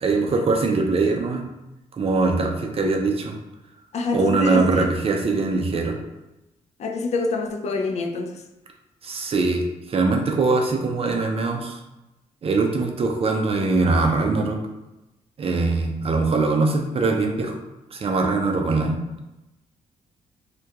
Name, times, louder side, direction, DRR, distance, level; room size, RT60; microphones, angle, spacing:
voice 1, 0.0-1.4 1.9-3.4 4.1-6.0 9.0-9.6 9.9-11.8 12.4-14.6 15.4-17.6 17.9-19.0, right 3 dB, 45° right, 3 dB, 0.5 m, -22 dB
voice 2, 3.9-4.9 6.8-8.4, left 3 dB, 55° left, 4 dB, 0.4 m, -26 dB
2.3 x 2.2 x 2.8 m, 0.97 s
cardioid pair, 70°, 14 cm